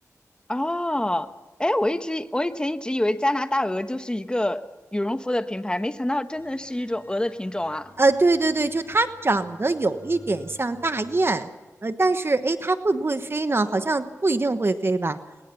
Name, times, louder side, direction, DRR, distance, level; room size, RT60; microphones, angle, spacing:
voice 1, 0.5-1.3 1.6-4.6 4.9-7.9, left 1 dB, 15° left, 10 dB, 1.3 m, -26 dB
sound 1, 6.4-11.6, left 2 dB, 40° left, 6.9 m, -51 dB
voice 2, 8.0-11.5 11.8-15.2, right 3 dB, 40° right, 10 dB, 1.2 m, -23 dB
22.0 x 20.0 x 7.1 m, 1.2 s
cardioid pair, 50°, 6 cm